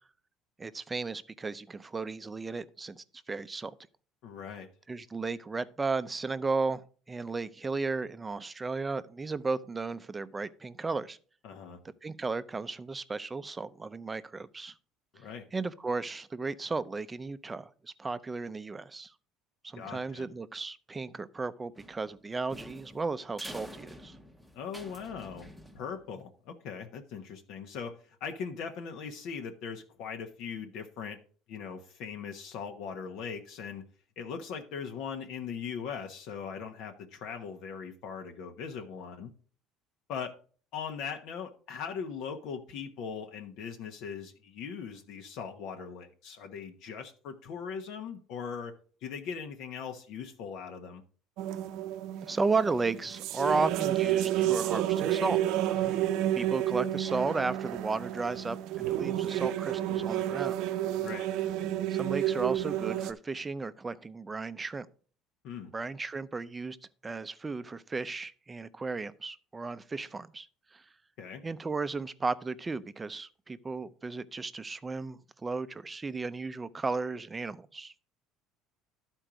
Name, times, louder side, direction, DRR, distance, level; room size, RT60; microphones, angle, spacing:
voice 1, 0.6-3.7 4.9-6.8 7.1-11.2 12.0-14.7 15.5-19.1 19.6-24.1 52.2-55.4 56.3-60.6 61.9-64.9 65.7-66.8 67.0-70.8 71.4-77.9, right 4 dB, 15° right, 0.5 m, -34 dB
voice 2, 4.2-4.7 11.4-11.8 15.1-15.5 19.7-20.3 24.5-25.5 25.7-31.2 31.5-33.8 34.2-39.3 40.1-40.4 40.7-48.7 49.0-51.0 61.0-61.3 65.4-65.7 71.2-71.4, left 6 dB, 65° left, 1.1 m, -40 dB
sound 1, 21.7-26.2, equal, ahead, 0.9 m, -48 dB
sound 2, 51.4-63.1, right 12 dB, 70° right, 0.6 m, -30 dB
12.0 x 4.5 x 5.0 m
cardioid pair, 125°, 0 cm